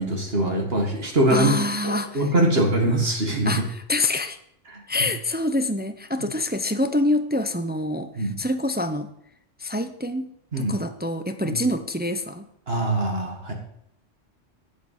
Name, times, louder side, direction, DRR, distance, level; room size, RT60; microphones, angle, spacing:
voice 1, 0.0-1.6 1.8-3.6 4.7-4.8 8.2-8.3 10.5-10.8 11.4-11.6 12.7-13.5, right 1 dB, 55° right, 1 dB, 2.1 m, -23 dB
voice 2, 1.3-2.3 3.4-4.4 4.9-8.1 8.4-9.1 9.6-12.5, left 1 dB, 10° right, 9 dB, 0.5 m, -26 dB
8.4 x 8.3 x 8.2 m, 0.74 s
omnidirectional pair, 1.3 m